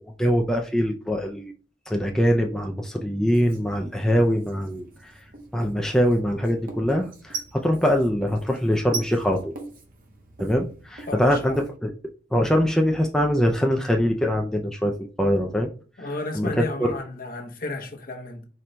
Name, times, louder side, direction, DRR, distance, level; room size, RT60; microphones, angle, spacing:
voice 1, 0.2-1.5 1.9-5.2 5.5-9.5 10.4-11.9 12.3-15.7 16.4-17.0, equal, 5° left, 0.3 m, -23 dB
Writing, 3.3-11.7, right 4 dB, 50° right, 0.7 m, -41 dB
voice 2, 11.1-11.6 16.0-18.5, left 2 dB, 55° left, 0.8 m, -33 dB
4.4 x 2.2 x 3.8 m
head